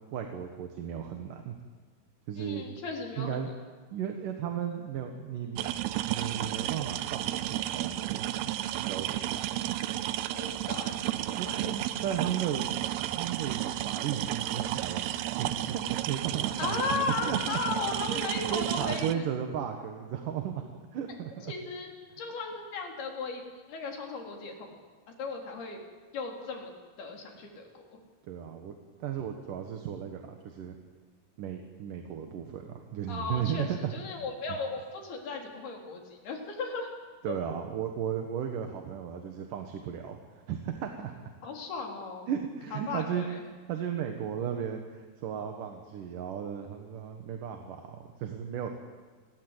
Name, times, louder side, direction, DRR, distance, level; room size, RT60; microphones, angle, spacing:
voice 1, 0.1-1.6 2.3-2.7 3.2-3.5 3.9-5.6 6.1-9.3 11.3-12.6 13.2-17.6 18.5-20.6 20.9-21.5 28.3-28.7 29.0-30.8 31.4-33.9 37.2-41.2 42.3-43.2 43.7-48.7, right 8 dB, 65° right, 5 dB, 2.9 m, -35 dB
voice 2, 2.4-3.4 10.3-11.0 11.5-11.6 16.6-19.3 21.5-21.9 22.2-23.4 23.7-24.8 25.2-25.8 26.1-26.7 27.0-28.0 33.1-36.9 37.3-37.4 41.4-42.3 42.7-43.4, left 4 dB, 75° left, 2 dB, 5.3 m, -36 dB
sound 1, 5.6-19.1, right 13 dB, 90° right, 3.0 m, -32 dB
29.0 x 21.0 x 8.1 m, 1.5 s
omnidirectional pair, 4.5 m